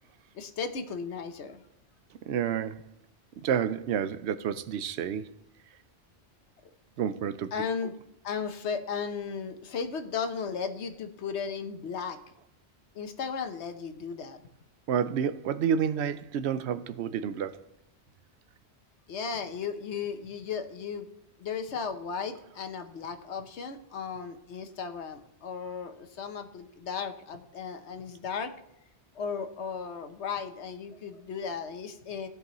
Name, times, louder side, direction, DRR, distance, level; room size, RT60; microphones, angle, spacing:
voice 1, 0.3-1.6 7.5-7.9 8.2-12.2 12.9-14.4 19.1-21.1 21.4-28.5 29.1-32.3, left 6 dB, 85° left, 1.2 m, -35 dB
voice 2, 2.3-2.8 3.4-5.3 7.0-7.5 14.9-17.6, right 8 dB, 80° right, 0.8 m, -29 dB
15.5 x 5.3 x 3.0 m
omnidirectional pair, 1.1 m